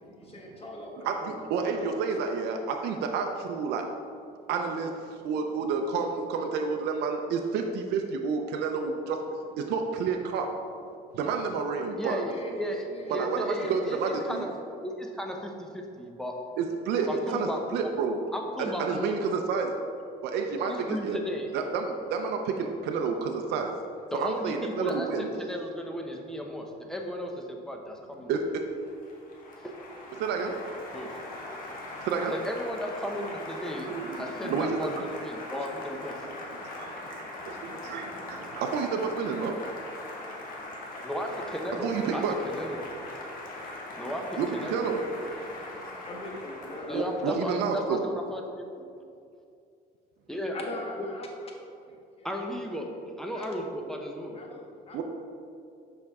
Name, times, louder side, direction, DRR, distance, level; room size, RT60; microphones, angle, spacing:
voice 1, 0.0-2.0 2.2-2.3 12.1-14.5 22.0-22.3 46.0-47.1 50.5-52.3 52.6-52.8 53.3-53.7 54.3-55.0, left 1 dB, 35° left, 1 dB, 1.2 m, -42 dB
voice 2, 1.0-3.9 4.5-9.2 9.6-10.5 11.1-12.2 13.1-14.5 16.6-18.3 18.6-19.8 20.2-21.2 21.5-23.7 24.1-25.3 28.3-28.6 30.2-30.6 32.0-32.4 33.9-35.0 36.8-39.5 41.8-42.4 44.4-45.0 46.9-48.0 54.9-55.0, right 5 dB, 80° right, 3 dB, 0.5 m, -30 dB
voice 3, 12.0-12.3 12.6-14.5 14.8-16.3 17.0-17.9 18.3-19.2 20.7-21.5 24.1-25.1 25.4-28.3 29.6-29.7 30.9-31.1 32.3-36.2 41.0-43.0 44.0-44.9 45.4-45.5 46.9-48.4 50.3-50.6 52.2-52.9 53.2-54.4, equal, 5° left, 2 dB, 0.8 m, -35 dB
Applause, 28.5-47.4, left 2 dB, 55° left, 1.3 m, -41 dB
6.7 x 5.3 x 3.6 m, 2.5 s
cardioid pair, 110°, 17 cm